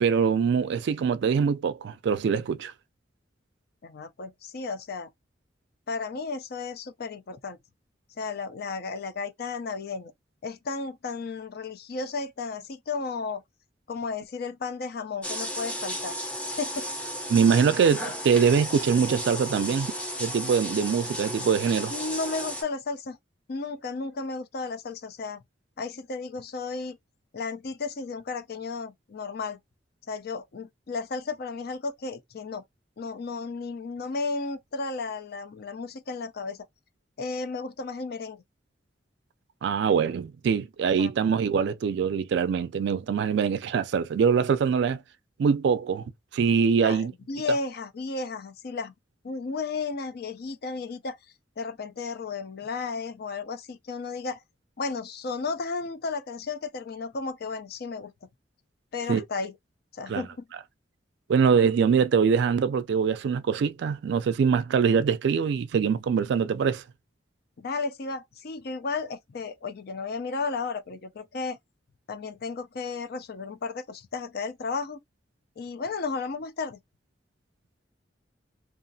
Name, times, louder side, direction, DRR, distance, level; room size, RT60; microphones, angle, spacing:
voice 1, 0.0-2.7 17.3-19.9 20.2-21.9 39.6-45.0 45.4-46.0 46.3-47.1 59.1-59.2 60.1-60.2 61.3-66.8, right 6 dB, 65° right, 0.3 m, -23 dB
voice 2, 3.8-5.1 5.9-7.6 8.2-10.1 10.4-13.4 13.9-16.2 16.6-16.9 21.9-23.2 23.5-25.4 25.8-27.0 27.3-29.6 30.1-32.6 33.0-36.6 37.2-38.4 41.0-41.1 46.8-48.9 49.2-51.2 51.6-54.4 54.8-58.1 58.9-59.5 59.9-60.4 67.6-71.6 72.1-75.0 75.6-76.8, left 4 dB, 60° left, 0.5 m, -33 dB
sound 1, 15.2-22.6, equal, 5° left, 0.6 m, -34 dB
2.7 x 2.4 x 2.6 m
head